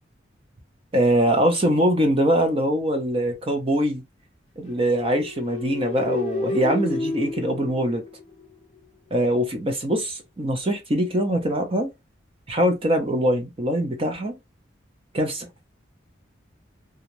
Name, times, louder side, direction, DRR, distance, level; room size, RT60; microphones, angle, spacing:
voice 1, 0.9-4.0 4.6-8.0 9.1-11.9 12.5-14.4 15.1-15.5, right 1 dB, 30° right, 0.6 m, -23 dB
sound 1, 4.7-8.5, left 3 dB, 30° left, 0.5 m, -31 dB
2.6 x 2.3 x 2.9 m
head